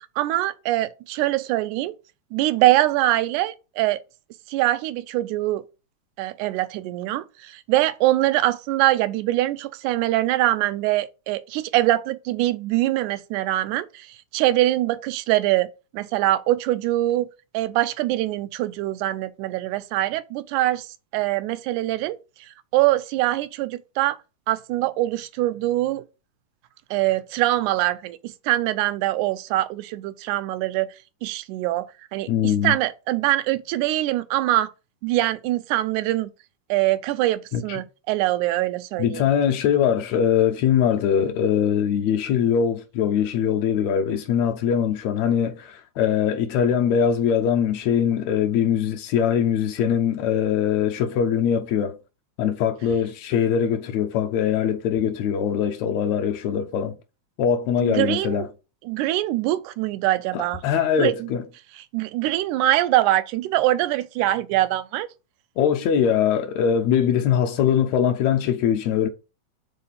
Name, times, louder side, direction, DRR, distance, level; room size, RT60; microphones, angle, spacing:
voice 1, 0.0-1.9 2.3-4.0 4.5-5.6 6.2-14.1 14.3-17.3 17.5-20.9 21.1-22.2 22.7-24.2 24.5-26.0 26.9-28.2 28.5-30.9 31.2-31.9 32.1-34.7 35.0-36.3 36.7-39.2 57.8-58.5 58.9-60.6 61.0-61.3 61.9-65.1, right 15 dB, 90° right, 2.0 m, -23 dB
voice 2, 32.3-32.8 37.5-37.8 39.0-52.0 52.4-57.0 57.4-58.5 60.3-61.4 65.6-69.1, left 8 dB, 75° left, 1.7 m, -22 dB
4.8 x 3.7 x 5.6 m
omnidirectional pair, 3.4 m